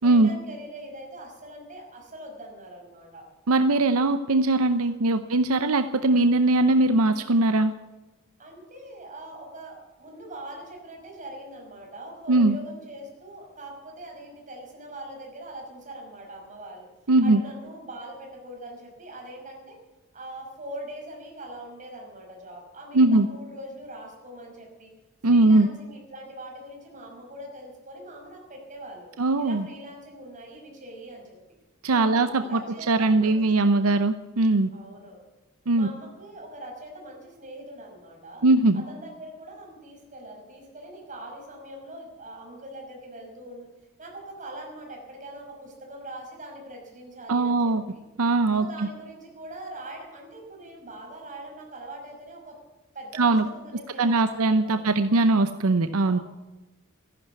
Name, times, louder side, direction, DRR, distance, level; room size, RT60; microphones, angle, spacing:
voice 1, 0.0-3.2 8.4-16.9 17.2-19.8 20.1-24.9 25.3-29.1 29.4-31.4 31.9-33.5 34.7-35.3 35.7-38.4 38.7-43.7 44.0-47.7 48.6-52.6 52.9-54.9 56.1-56.2, right 1 dB, 40° right, 1 dB, 5.5 m, -42 dB
voice 2, 3.5-7.7 12.3-12.6 17.1-17.4 22.9-23.3 25.2-25.7 29.2-29.7 31.8-32.6 32.9-34.7 35.7-35.9 38.4-38.8 47.3-47.8 48.2-48.7 53.2-53.5 54.0-56.2, right 2 dB, 80° right, 10 dB, 0.7 m, -20 dB
14.5 x 11.0 x 8.2 m, 1.1 s
head